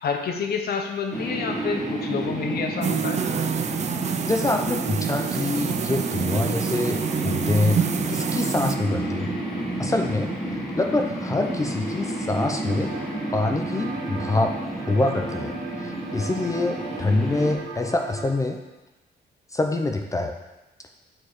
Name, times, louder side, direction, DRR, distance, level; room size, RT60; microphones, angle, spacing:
voice 1, 0.0-3.2, left 5 dB, 65° left, 3 dB, 0.9 m, -28 dB
sound 1, 1.1-17.5, right 1 dB, 5° left, 1.5 m, -31 dB
sound 2, 2.8-8.8, right 8 dB, 40° right, 0.4 m, -27 dB
voice 2, 4.2-7.8 8.1-9.3 9.8-12.9 13.3-15.5 15.8-18.6 19.5-20.3, left 2 dB, 20° left, 4 dB, 0.5 m, -25 dB
sound 3, 12.7-18.3, right 4 dB, 90° right, 1.4 m, -37 dB
8.8 x 4.5 x 4.8 m, 1.0 s
wide cardioid pair, 160°, 18 cm